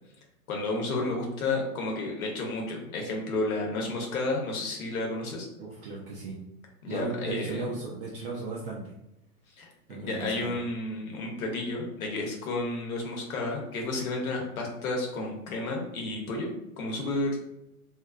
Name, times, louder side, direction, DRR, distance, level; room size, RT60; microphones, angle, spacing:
voice 1, 0.5-5.5 6.8-7.7 9.6-16.5 16.8-17.3, left 2 dB, 65° left, 0 dB, 0.9 m, -31 dB
voice 2, 5.6-6.4 6.9-8.9 9.9-10.6, right 4 dB, 40° right, -4 dB, 0.5 m, -36 dB
2.5 x 2.2 x 2.3 m, 0.86 s
figure-of-eight pair, 105°, 46 cm